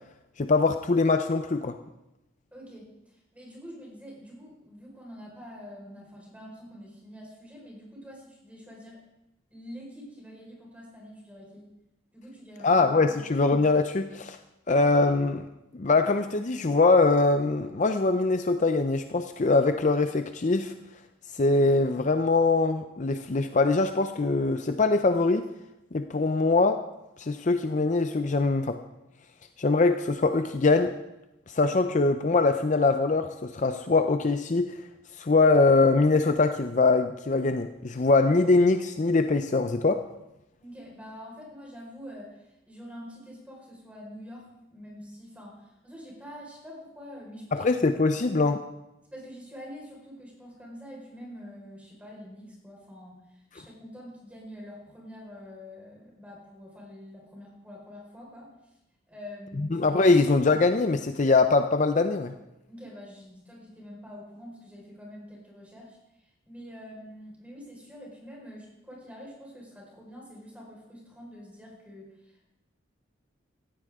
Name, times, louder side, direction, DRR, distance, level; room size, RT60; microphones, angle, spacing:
voice 1, 0.4-1.8 12.6-14.4 14.7-15.5 15.7-20.7 21.3-25.5 25.9-26.8 27.2-28.8 29.6-30.9 31.5-34.8 35.2-40.0 47.5-48.6 59.6-62.3, left 3 dB, 40° left, 8 dB, 0.5 m, -23 dB
voice 2, 2.5-2.9 3.3-9.0 9.5-11.7 12.1-12.8 13.1-13.2 40.6-47.6 49.1-53.2 53.5-58.5 59.1-60.2 62.7-66.0 66.5-72.5, equal, 5° right, -3 dB, 4.7 m, -46 dB
17.0 x 15.0 x 3.6 m, 0.92 s
head